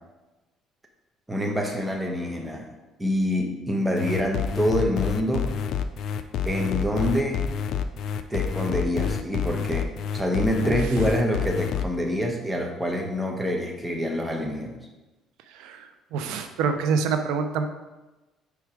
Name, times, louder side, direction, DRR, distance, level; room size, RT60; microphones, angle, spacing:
voice 1, 1.3-2.7 3.0-5.5 6.4-7.4 8.3-14.8, equal, 10° right, 2 dB, 1.0 m, -26 dB
sound 1, 4.0-11.8, left 7 dB, 65° left, 0.4 m, -28 dB
voice 2, 16.1-17.6, right 5 dB, 85° right, 8 dB, 0.6 m, -26 dB
4.8 x 4.7 x 4.8 m, 1.1 s
cardioid pair, 95°, 0 cm